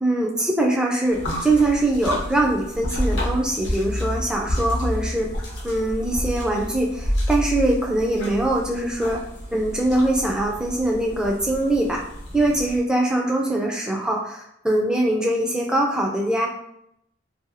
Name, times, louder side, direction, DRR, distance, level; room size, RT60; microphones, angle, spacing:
voice 1, 0.0-5.3 5.6-9.2 9.5-12.0 12.3-16.5, right 1 dB, 5° right, -1 dB, 0.3 m, -22 dB
sound 1, 1.1-12.8, equal, 80° left, 0.7 m, -30 dB
2.6 x 2.2 x 2.7 m, 0.75 s
head